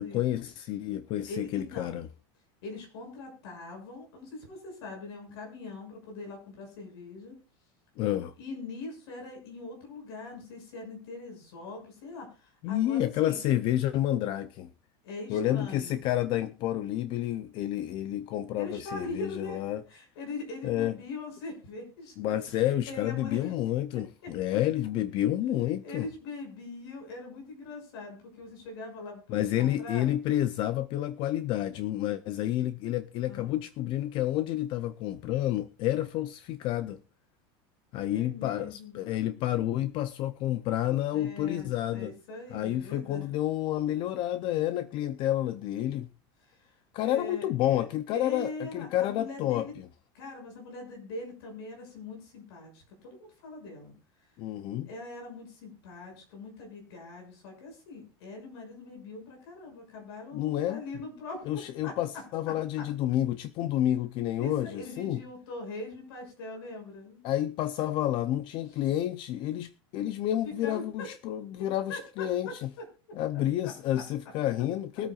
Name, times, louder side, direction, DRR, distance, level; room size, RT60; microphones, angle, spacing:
voice 1, 0.0-2.1 8.0-8.3 12.6-14.7 15.3-19.8 20.6-20.9 22.2-26.1 29.3-37.0 37.9-42.1 42.5-46.1 46.9-49.7 54.4-54.9 60.3-60.8 61.5-65.2 67.2-72.7 73.1-75.1, left 13 dB, 40° left, 0.6 m, -29 dB
voice 2, 1.3-2.0 2.6-7.3 8.4-13.4 15.0-16.0 18.5-19.6 19.9-23.5 23.9-24.3 25.8-30.1 33.3-33.6 38.1-39.0 41.1-43.3 46.4-46.7 47.0-47.8 48.1-49.7 50.1-53.9 54.9-62.9 64.4-67.2 70.6-71.1 71.6-72.5, left 3 dB, 85° left, 6.6 m, -42 dB
22.5 x 8.7 x 2.4 m
supercardioid pair, 160°, 13 cm